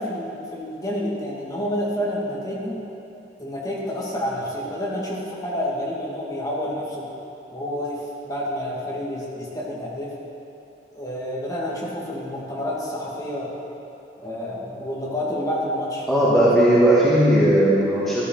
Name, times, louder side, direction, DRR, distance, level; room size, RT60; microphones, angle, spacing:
voice 1, 0.0-2.8 3.4-7.1 7.5-10.1 10.9-13.5 14.2-16.1 16.4-16.7, equal, 20° left, -5 dB, 2.3 m, -29 dB
voice 2, 16.1-18.2, right 1 dB, ahead, -9 dB, 1.6 m, -17 dB
13.5 x 13.0 x 4.0 m, 3.0 s
head